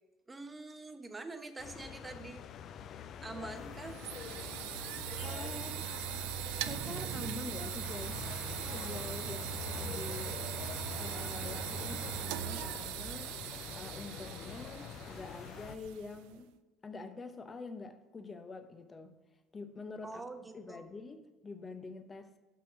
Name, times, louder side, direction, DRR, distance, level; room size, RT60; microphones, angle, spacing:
voice 1, 0.3-2.4 3.2-4.0 20.0-20.9, right 3 dB, 20° right, 7 dB, 1.0 m, -45 dB
sound 1, 1.6-15.7, left 8 dB, 55° left, 0.4 m, -45 dB
sound 2, 3.6-16.4, right 13 dB, 75° right, 0.4 m, -40 dB
voice 2, 5.2-5.9 6.5-8.3 8.7-10.5 10.9-13.4 13.7-16.5 16.8-19.2 19.5-20.2 20.5-22.3, left 3 dB, 30° left, 8 dB, 0.9 m, -46 dB
6.2 x 5.9 x 6.0 m, 1.2 s
hypercardioid pair, 75°, 0 cm